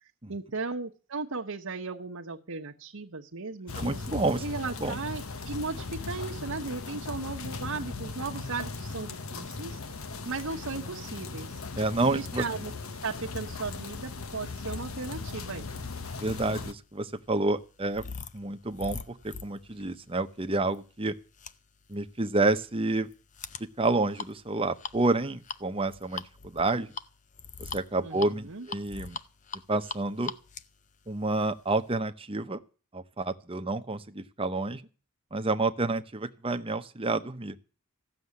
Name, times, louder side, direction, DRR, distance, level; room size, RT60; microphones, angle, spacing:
voice 1, 0.3-4.0 4.4-9.8 10.2-11.6 12.1-12.7 13.0-15.7 28.0-28.7, right 4 dB, 75° right, -1 dB, 1.1 m, -36 dB
sound 1, 3.7-16.7, left 3 dB, 75° left, 1.1 m, -38 dB
voice 2, 3.8-4.4 4.8-5.0 11.8-12.4 16.2-18.0 18.3-21.2 21.9-23.1 23.8-26.9 27.6-29.2 29.7-30.3 31.1-32.6 32.9-34.8 35.3-37.6, right 2 dB, 25° right, 9 dB, 0.9 m, -29 dB
sound 2, 16.8-32.0, left 5 dB, 35° left, 0.7 m, -43 dB
15.0 x 7.0 x 9.7 m, 0.36 s
head